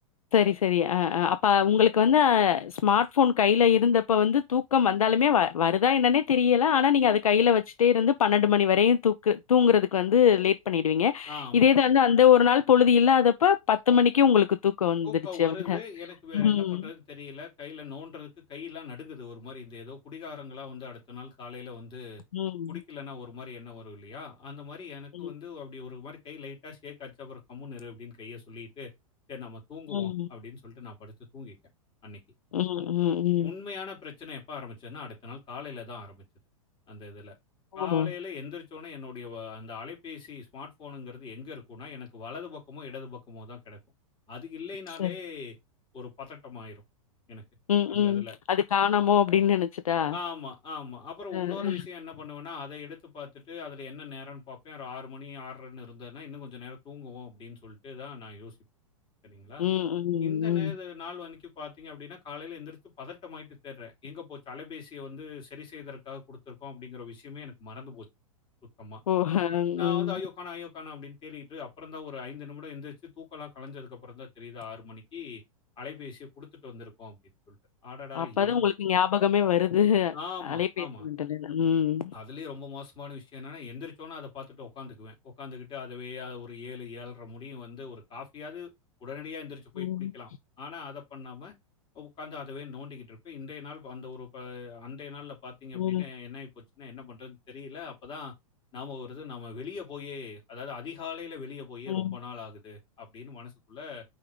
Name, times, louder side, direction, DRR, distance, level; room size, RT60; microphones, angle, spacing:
voice 1, 0.3-15.1 15.4-15.8 16.3-16.9 22.3-22.8 25.1-25.3 29.9-30.3 32.5-33.5 37.8-38.1 45.0-45.1 47.7-50.1 51.3-51.8 59.6-60.7 69.1-70.1 78.1-80.1 80.4-82.1 89.8-90.1 95.8-96.0 101.9-102.2, left 8 dB, 75° left, 0.5 m, -23 dB
voice 2, 11.3-11.7 15.0-22.2 22.7-28.9 29.3-31.6 32.0-32.2 33.4-36.2 36.9-37.3 37.7-43.8 44.3-45.6 45.9-46.8 47.3-47.4 47.9-48.3 50.1-58.6 59.2-59.7 60.2-68.1 68.8-69.0 69.7-75.4 75.8-77.2 77.5-77.6 77.8-78.6 80.1-81.1 82.1-88.7 89.0-90.3 90.6-91.5 91.9-98.3 98.7-104.0, left 5 dB, 25° left, 3.3 m, -41 dB
5.4 x 3.6 x 5.0 m
figure-of-eight pair, 100°, 18 cm